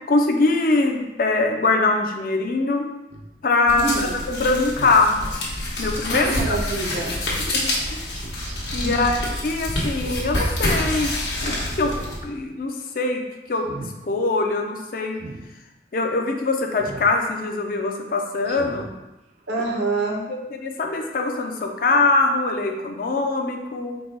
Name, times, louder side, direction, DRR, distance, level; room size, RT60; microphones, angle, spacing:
voice 1, 0.1-2.9 3.4-3.9 4.3-5.2 5.8-6.5 7.5-8.0 8.7-9.2 9.4-11.1 11.4-11.9 12.2-13.2 13.5-13.7 14.1-15.2 15.9-18.9 20.6-24.0, left 3 dB, 50° left, 3 dB, 0.4 m, -22 dB
Speech synthesizer, 3.1-3.3 4.8-5.0 6.3-6.7 8.1-8.6 9.9-10.4 10.8-10.9 11.7-12.2 12.6-12.9 13.5-13.9 15.2-15.4 16.8-17.1 17.6-17.7 18.4-18.9 19.4-19.5, right 2 dB, 40° right, 0.3 m, -39 dB
sound 1, 3.7-12.2, left 1 dB, 80° left, 1.1 m, -27 dB
voice 2, 3.7-4.2 6.1-7.1 8.8-9.0 19.5-20.2, right 3 dB, 75° right, -1 dB, 0.8 m, -26 dB
4.0 x 2.2 x 4.5 m, 1.0 s
head